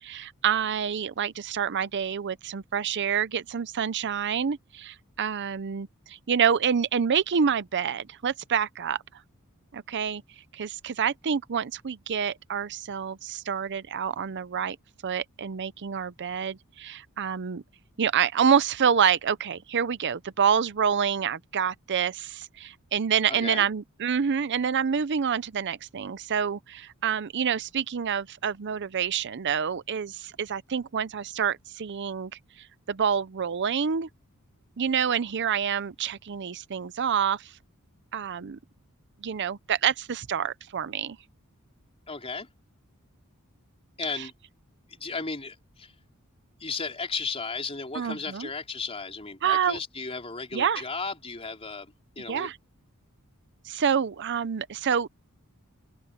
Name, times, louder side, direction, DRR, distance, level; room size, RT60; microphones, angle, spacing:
voice 1, 0.0-9.0 9.7-10.2 10.5-14.8 15.0-17.6 18.0-32.3 32.6-34.1 34.8-37.5 38.1-38.6 39.2-41.2 44.2-44.3 47.9-48.5 49.4-49.8 50.5-50.8 52.3-52.6 53.7-55.1, right 7 dB, 55° right, 0.6 m, -27 dB
voice 2, 23.3-23.7 42.1-42.5 44.0-44.3 44.9-45.9 46.6-52.5, left 4 dB, 25° left, 3.8 m, -35 dB
open air
head